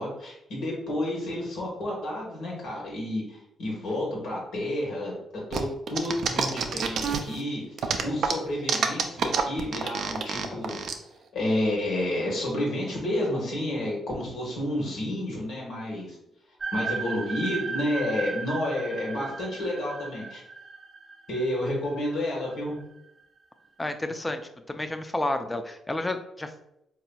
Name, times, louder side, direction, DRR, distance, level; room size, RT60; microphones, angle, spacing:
voice 1, 0.0-5.1 5.5-7.6 8.0-10.8 11.3-16.1 16.7-20.4 21.3-22.8, left 1 dB, 75° left, -3 dB, 1.3 m, -30 dB
sound 1, 5.5-7.4 7.8-10.9, right 6 dB, 65° right, 0.4 m, -27 dB
flute bell, 16.6-22.8, right 4 dB, 25° right, 0.7 m, -36 dB
voice 2, 23.8-24.4 24.7-26.5, left 2 dB, 20° left, 7 dB, 0.4 m, -30 dB
4.0 x 2.8 x 2.2 m, 0.81 s
supercardioid pair, 65°, 0 cm